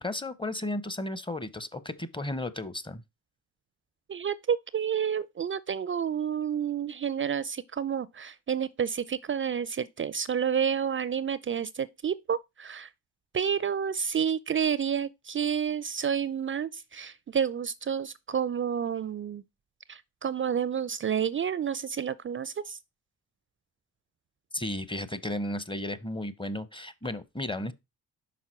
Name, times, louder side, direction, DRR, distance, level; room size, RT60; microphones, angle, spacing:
voice 1, 0.0-3.0 24.5-27.7, left 1 dB, 15° left, 0.8 m, -34 dB
voice 2, 4.1-12.9 13.3-19.4 19.9-22.8, right 8 dB, 35° right, 0.4 m, -30 dB
5.9 x 4.5 x 4.4 m
supercardioid pair, 60°, 37 cm